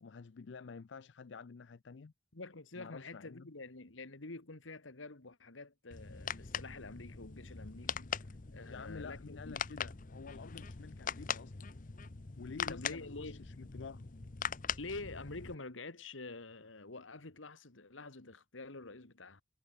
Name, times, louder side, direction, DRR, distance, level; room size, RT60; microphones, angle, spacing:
voice 1, 0.0-2.1 2.8-3.5 8.7-11.7 12.4-14.1, left 5 dB, 65° left, 0.5 m, -49 dB
voice 2, 2.3-8.2 8.5-9.6 12.7-13.4 14.8-19.4, left 3 dB, 85° left, 1.9 m, -47 dB
sound 1, 5.9-15.5, left 7 dB, 45° left, 0.8 m, -42 dB
head